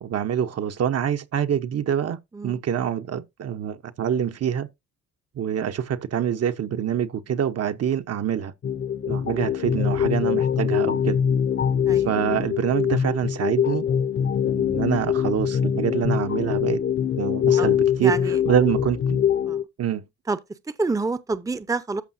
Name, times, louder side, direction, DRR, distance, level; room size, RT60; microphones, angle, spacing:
voice 1, 0.0-2.2 2.4-4.7 5.4-8.5 9.1-11.2 12.0-13.9 14.4-16.8 17.2-18.2 18.5-19.2 19.8-20.0, right 9 dB, 55° right, 1.0 m, -25 dB
sound 1, 8.6-19.6, left 8 dB, 40° left, 0.8 m, -23 dB
voice 2, 18.0-18.4 19.4-19.6 20.3-20.4 20.7-22.0, right 3 dB, 10° right, 0.7 m, -28 dB
13.5 x 5.5 x 2.7 m
cardioid pair, 90°, 30 cm